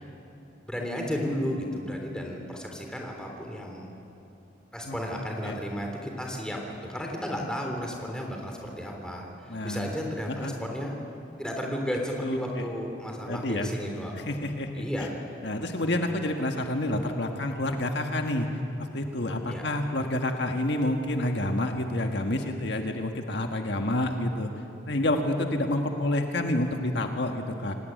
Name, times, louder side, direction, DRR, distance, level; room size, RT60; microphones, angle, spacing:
voice 1, 0.6-3.9 4.7-9.3 9.6-10.9 11.4-14.3 14.7-15.1 19.5-19.6, equal, 5° left, 1 dB, 3.5 m, -33 dB
voice 2, 9.5-9.9 10.3-10.5 12.2-12.6 13.3-13.7 14.1-15.1 15.4-18.5 18.8-24.5 24.9-27.8, left 1 dB, 65° left, 4 dB, 1.6 m, -28 dB
27.5 x 18.5 x 9.4 m, 2.8 s
head